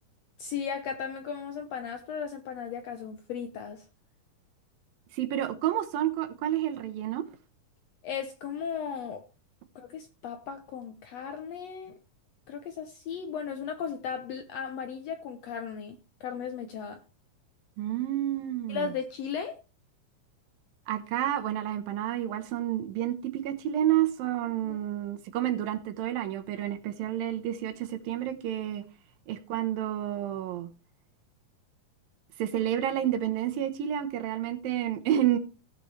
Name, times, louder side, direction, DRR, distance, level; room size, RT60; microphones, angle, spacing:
voice 1, 0.4-3.8 8.0-9.2 9.7-12.0 12.5-17.0 18.7-19.6 24.6-24.8, left 7 dB, 85° left, 1.4 m, -36 dB
voice 2, 5.1-7.2 17.8-18.9 20.9-28.8 29.3-30.7 32.4-35.4, right 11 dB, 80° right, 2.9 m, -30 dB
16.5 x 6.9 x 3.2 m
omnidirectional pair, 4.0 m